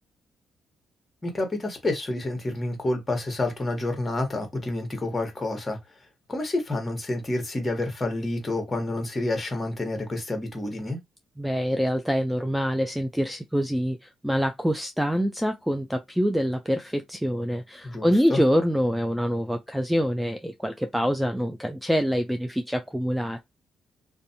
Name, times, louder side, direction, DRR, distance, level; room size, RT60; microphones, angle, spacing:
voice 1, 1.2-5.8 6.3-11.0 17.8-18.4, left 2 dB, 25° left, 1.1 m, -29 dB
voice 2, 11.4-23.4, equal, ahead, 0.3 m, -25 dB
2.5 x 2.1 x 2.6 m
cardioid pair, 90°, 0 cm